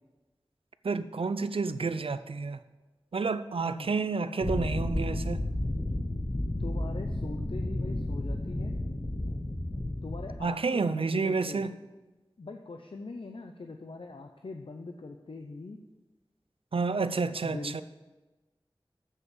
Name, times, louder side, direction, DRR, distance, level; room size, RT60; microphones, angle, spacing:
voice 1, 0.8-2.6 3.1-5.4 10.4-11.7 16.7-17.8, right 4 dB, 85° right, 0.4 m, -30 dB
sound 1, 4.4-10.4, left 1 dB, 40° left, 1.0 m, -32 dB
voice 2, 6.6-8.8 10.0-11.7 12.4-15.8 17.4-17.8, left 3 dB, 70° left, 0.6 m, -42 dB
7.6 x 6.7 x 7.1 m
wide cardioid pair, 55°, 9 cm